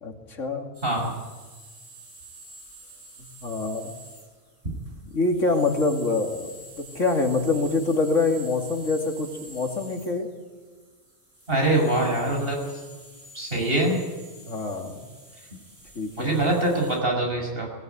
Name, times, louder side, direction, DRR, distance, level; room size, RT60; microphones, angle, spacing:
voice 1, 0.0-0.7 3.4-3.9 5.0-10.3 14.4-15.1 15.9-16.3, left 3 dB, 80° left, 3 dB, 2.9 m, -25 dB
sound 1, 0.7-17.0, right 1 dB, 80° right, 7.1 m, -47 dB
voice 2, 0.8-1.1 11.5-12.6 13.3-14.0 16.2-17.7, right 1 dB, 50° right, 1 dB, 6.2 m, -23 dB
18.5 x 18.5 x 9.4 m, 1.3 s
omnidirectional pair, 1.3 m